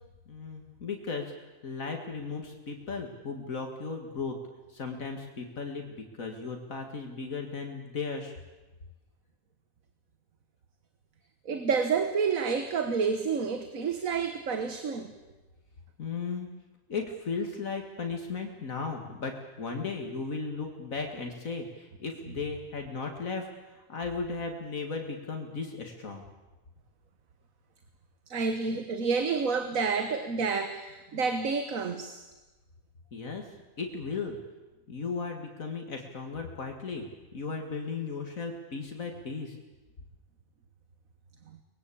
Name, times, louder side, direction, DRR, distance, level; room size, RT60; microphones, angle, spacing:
voice 1, 0.3-1.3 1.6-4.4 4.7-8.3 16.0-16.5 16.9-26.2 33.1-33.4 33.8-34.4 34.9-39.6, left 4 dB, 75° left, 4 dB, 2.4 m, -36 dB
voice 2, 11.5-15.1 28.3-32.3, right 5 dB, 75° right, 8 dB, 1.8 m, -29 dB
24.0 x 20.5 x 8.6 m, 1.2 s
omnidirectional pair, 1.4 m